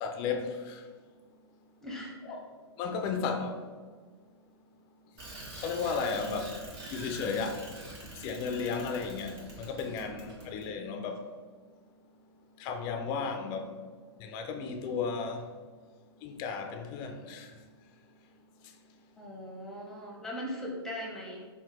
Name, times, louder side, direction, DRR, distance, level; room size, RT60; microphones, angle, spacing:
voice 1, 0.0-0.8 2.2-2.4 2.8-3.6 5.6-6.5 6.9-7.6 8.2-11.2 12.6-13.7 14.2-15.5 16.2-17.5, left 5 dB, 30° left, 0.4 m, -34 dB
voice 2, 1.8-2.2 19.2-21.5, equal, 5° left, 0.8 m, -39 dB
Bicycle, 5.2-10.7, right 1 dB, 55° right, 1.4 m, -45 dB
5.5 x 2.2 x 3.0 m
figure-of-eight pair, 110°, 14 cm